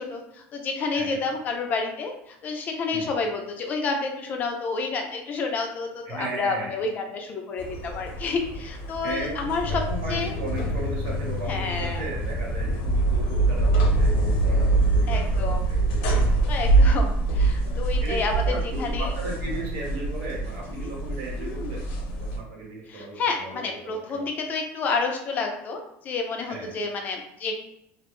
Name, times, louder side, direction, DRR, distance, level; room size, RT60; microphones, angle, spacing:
voice 1, 0.0-9.7 10.1-10.4 11.5-12.0 15.1-15.7 16.5-18.4 18.8-19.1 20.8-20.9 21.4-21.8 22.9-27.6, left 4 dB, 30° left, 3 dB, 0.3 m, -30 dB
voice 2, 6.1-6.8 9.0-16.6 17.6-17.7 18.0-21.8 22.1-24.2 26.5-26.7, right 2 dB, 70° right, -3 dB, 1.1 m, -36 dB
sound 1, 7.6-22.4, right 2 dB, 80° left, 0.6 m, -24 dB
2.4 x 2.0 x 2.9 m, 0.81 s
cardioid pair, 165°, 6 cm